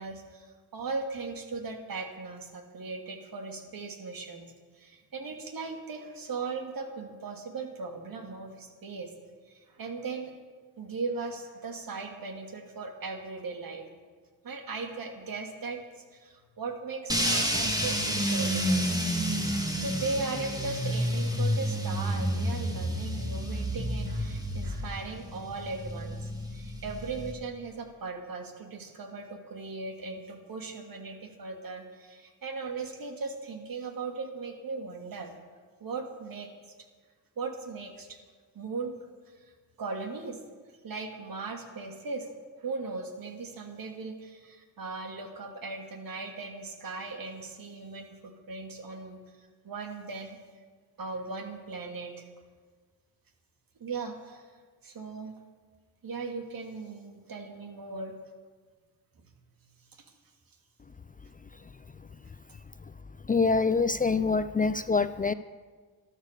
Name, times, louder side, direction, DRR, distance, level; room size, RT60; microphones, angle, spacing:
voice 1, 0.0-9.1 9.5-10.3 10.8-13.9 14.4-15.8 16.1-18.9 19.8-35.3 35.8-36.5 37.4-38.2 38.5-39.0 39.4-39.5 39.8-40.4 40.8-42.3 42.6-49.2 49.6-50.4 51.0-52.2 53.8-54.4 54.8-55.3 56.0-58.1 59.9-60.0, right 4 dB, 60° right, 4 dB, 2.6 m, -38 dB
sound 1, 17.1-27.3, equal, 10° right, 2.8 m, -30 dB
voice 2, 63.3-65.3, left 4 dB, 20° left, 13 dB, 0.5 m, -25 dB
13.0 x 12.5 x 6.7 m, 1.5 s
cardioid pair, 65°, 39 cm